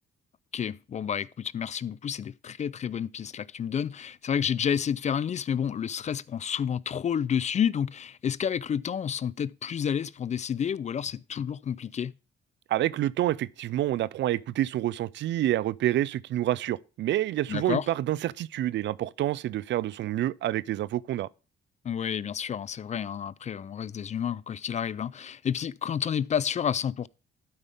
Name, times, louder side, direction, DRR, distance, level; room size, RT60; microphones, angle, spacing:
voice 1, 0.5-12.1 17.5-17.9 21.8-27.1, left 8 dB, 35° left, 0.4 m, -30 dB
voice 2, 12.7-21.3, right 13 dB, 65° right, 0.4 m, -28 dB
12.0 x 5.4 x 3.4 m
cardioid pair, 90°, 20 cm